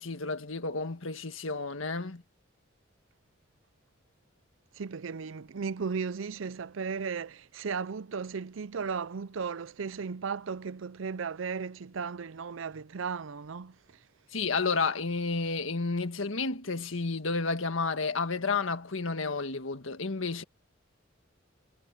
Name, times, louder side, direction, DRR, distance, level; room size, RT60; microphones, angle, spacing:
voice 1, 0.0-2.2 14.3-20.4, left 4 dB, 85° left, 1.6 m, -31 dB
voice 2, 4.8-13.7, right 5 dB, 75° right, 0.5 m, -35 dB
head